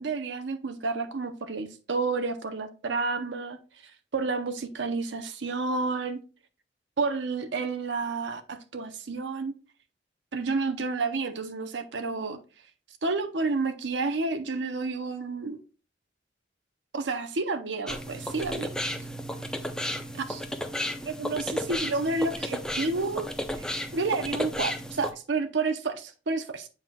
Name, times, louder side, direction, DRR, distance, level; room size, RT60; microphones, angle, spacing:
voice 1, 0.0-3.6 4.1-6.2 7.0-9.5 10.3-12.4 13.0-15.6 16.9-18.7 20.3-20.4 21.0-23.3 23.5-26.7, right 3 dB, 80° right, 0.7 m, -30 dB
sound 1, 17.9-25.1, equal, 5° left, 0.6 m, -33 dB
7.7 x 5.6 x 2.3 m
head